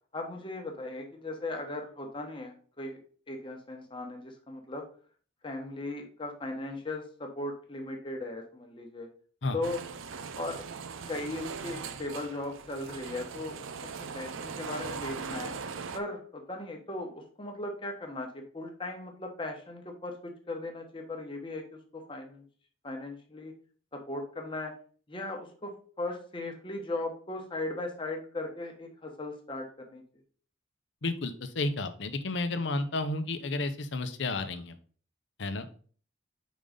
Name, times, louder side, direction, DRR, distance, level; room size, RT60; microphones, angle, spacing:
voice 1, 0.1-3.0 3.3-4.8 5.4-9.1 9.5-9.8 10.4-10.6 11.1-15.5 15.9-22.4 22.8-23.5 23.9-24.7 25.1-30.0, left 2 dB, 25° left, 3 dB, 1.1 m, -38 dB
sound 1, 9.6-16.0, right 5 dB, 90° right, 0.5 m, -40 dB
voice 2, 31.0-34.7 35.4-35.7, left 2 dB, 65° left, 9 dB, 0.7 m, -32 dB
5.1 x 3.8 x 5.0 m, 0.43 s
head